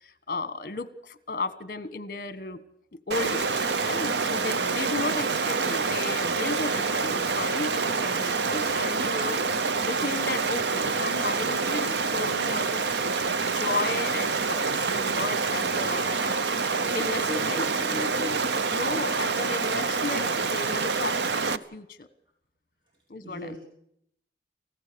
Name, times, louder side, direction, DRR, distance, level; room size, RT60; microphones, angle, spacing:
voice 1, 0.0-2.6 3.1-12.9 13.4-16.4 16.9-17.6 18.7-22.1 23.1-23.6, left 3 dB, 50° left, 13 dB, 1.3 m, -34 dB
Stream, 3.1-21.6, right 4 dB, 75° right, 0.8 m, -27 dB
voice 2, 17.2-18.4 23.2-23.6, left 1 dB, 25° right, -3 dB, 3.3 m, -36 dB
29.0 x 15.5 x 7.0 m, 0.75 s
head